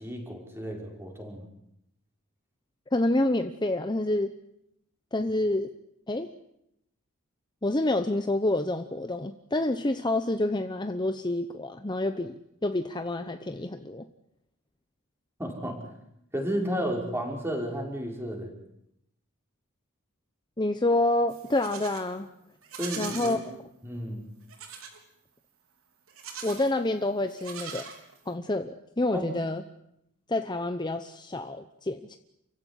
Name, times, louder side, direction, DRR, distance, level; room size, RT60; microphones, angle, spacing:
voice 1, 0.0-1.5 15.4-15.8 16.3-18.5 22.8-23.4 23.8-24.3 29.1-29.3, equal, 10° right, 1 dB, 5.5 m, -32 dB
voice 2, 2.9-4.3 5.1-5.7 6.1-6.3 7.6-12.3 12.6-14.1 20.6-22.3 23.0-23.4 26.4-27.9 28.3-29.6 30.3-32.2, left 2 dB, 20° left, 8 dB, 0.9 m, -28 dB
Livestock farm animals working animals, 21.3-22.1 22.6-23.4 24.5-25.0 26.1-26.7 27.3-28.3, right 6 dB, 85° right, 4.3 m, -41 dB
29.0 x 16.0 x 10.0 m, 0.80 s
head